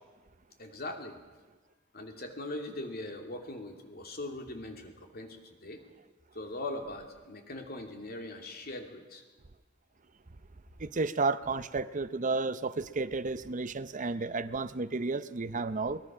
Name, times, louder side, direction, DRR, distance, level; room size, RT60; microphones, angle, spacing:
voice 1, 0.6-1.2 1.9-5.8 6.3-9.2, left 2 dB, 50° left, 2.7 m, -41 dB
voice 2, 10.8-16.0, right 3 dB, 40° right, 0.7 m, -32 dB
23.0 x 20.0 x 6.2 m
head